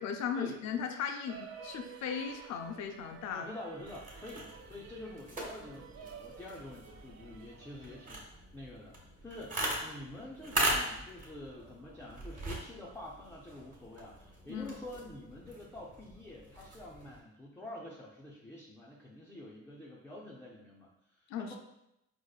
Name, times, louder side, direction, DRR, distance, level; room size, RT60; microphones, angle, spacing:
voice 1, 0.0-3.5 14.5-14.7 21.3-21.6, left 7 dB, 65° left, 5 dB, 0.4 m, -37 dB
sound 1, 1.3-8.1, right 7 dB, 60° right, 0.5 m, -52 dB
voice 2, 3.3-21.6, left 1 dB, 10° left, -4 dB, 0.4 m, -47 dB
sound 2, 3.8-17.2, right 1 dB, 25° right, 1.1 m, -40 dB
4.6 x 2.0 x 2.3 m, 0.84 s
cardioid pair, 90°, 30 cm